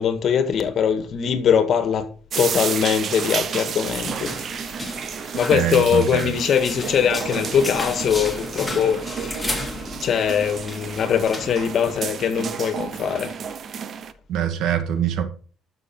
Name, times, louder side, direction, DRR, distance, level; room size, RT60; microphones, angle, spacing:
voice 1, 0.0-2.1 2.4-4.4 5.3-9.5 10.0-13.3, left 7 dB, 55° left, 1.8 m, -22 dB
sound 1, 2.3-14.1, right 7 dB, 55° right, 0.9 m, -31 dB
sound 2, 4.0-11.6, left 1 dB, 5° left, 3.4 m, -33 dB
voice 2, 5.5-6.3 14.3-15.2, right 9 dB, 75° right, 1.7 m, -23 dB
12.0 x 6.6 x 4.7 m
cardioid pair, 95°, 0 cm